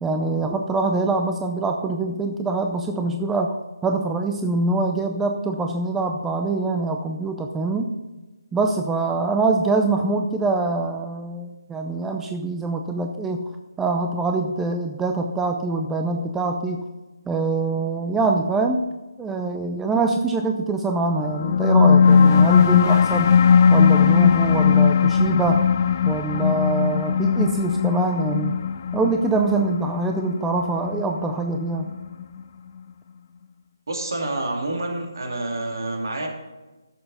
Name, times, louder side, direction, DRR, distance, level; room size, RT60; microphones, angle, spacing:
voice 1, 0.0-3.6 3.8-7.9 8.5-13.5 13.8-16.8 17.3-18.8 19.2-23.4 23.7-25.7 26.0-28.6 28.9-31.9, right 3 dB, 5° right, 4 dB, 0.5 m, -24 dB
sound 1, 21.3-32.2, left 6 dB, 40° left, 0.6 m, -18 dB
voice 2, 33.9-36.3, right 2 dB, 65° right, 1 dB, 2.7 m, -28 dB
14.0 x 6.9 x 4.1 m, 1.2 s
figure-of-eight pair, 155°, 2 cm